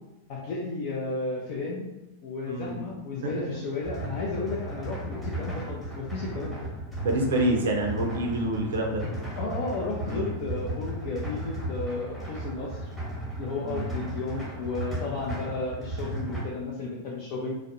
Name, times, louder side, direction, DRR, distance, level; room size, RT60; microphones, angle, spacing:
voice 1, 0.3-1.8 2.2-6.7 9.4-12.9 13.4-17.5, left 3 dB, 45° left, -4 dB, 0.4 m, -33 dB
voice 2, 2.5-2.8 7.0-9.0 10.0-10.3 13.6-13.8, right 1 dB, 65° right, 2 dB, 0.4 m, -27 dB
sound 1, 3.8-16.4, right 1 dB, 5° left, 0.9 m, -35 dB
2.4 x 2.0 x 2.6 m, 0.97 s
figure-of-eight pair, 90°, 0 cm